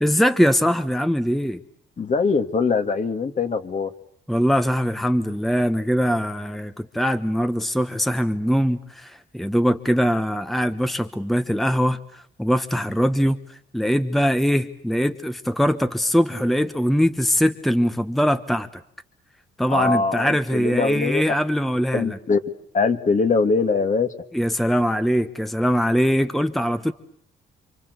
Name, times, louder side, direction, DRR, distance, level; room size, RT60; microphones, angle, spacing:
voice 1, 0.0-1.6 4.3-13.4 13.7-18.7 19.6-22.2 24.3-26.9, equal, ahead, 11 dB, 1.1 m, -22 dB
voice 2, 2.0-3.9 19.7-21.2 21.9-22.4 22.7-24.1, left 4 dB, 40° left, 8 dB, 2.2 m, -22 dB
28.5 x 25.0 x 8.1 m, 0.63 s
cardioid pair, 90°, 20 cm